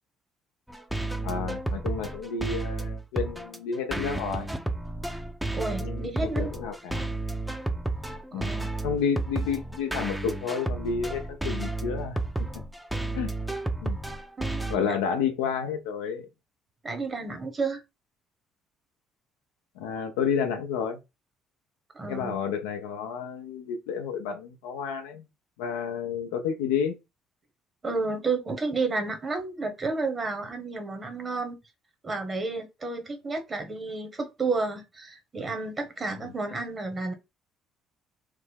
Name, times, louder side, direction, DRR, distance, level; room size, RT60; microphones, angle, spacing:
sound 1, 0.7-14.8, right 2 dB, 5° right, 0.5 m, -32 dB
voice 1, 1.2-4.5 5.8-7.0 8.3-8.5 8.8-12.5 13.1-13.3 13.8-14.0 14.7-16.3 19.8-21.0 22.1-25.3 25.6-26.9 36.1-36.3, left 6 dB, 90° left, 0.5 m, -30 dB
voice 2, 5.5-6.5 8.3-8.7 14.4-15.0 16.8-17.8 21.9-22.4 27.8-31.6 32.0-37.1, right 3 dB, 35° right, 1.0 m, -31 dB
3.2 x 2.0 x 3.4 m
supercardioid pair, 65°, 0 cm